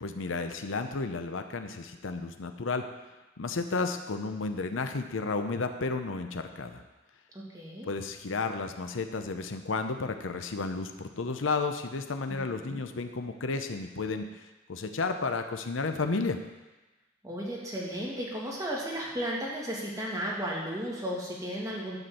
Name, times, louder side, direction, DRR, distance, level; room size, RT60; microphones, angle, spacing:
voice 1, 0.0-2.8 3.4-6.8 7.8-14.3 14.7-16.4, left 3 dB, 80° left, 7 dB, 0.7 m, -32 dB
voice 2, 7.3-7.9 12.3-12.8 17.2-22.0, equal, 15° right, -5 dB, 2.1 m, -34 dB
10.5 x 4.3 x 7.7 m, 1.1 s
head